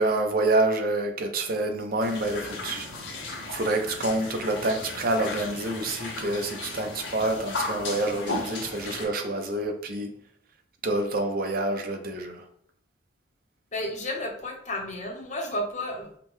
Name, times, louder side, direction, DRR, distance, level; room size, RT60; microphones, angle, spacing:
voice 1, 0.0-2.9 3.5-10.1 10.8-12.4, right 2 dB, 50° right, 0.6 m, -27 dB
sound 1, 2.0-9.0, left 2 dB, 75° left, 0.9 m, -35 dB
voice 2, 13.7-16.2, left 1 dB, 40° left, 0.8 m, -32 dB
5.1 x 2.1 x 3.1 m
head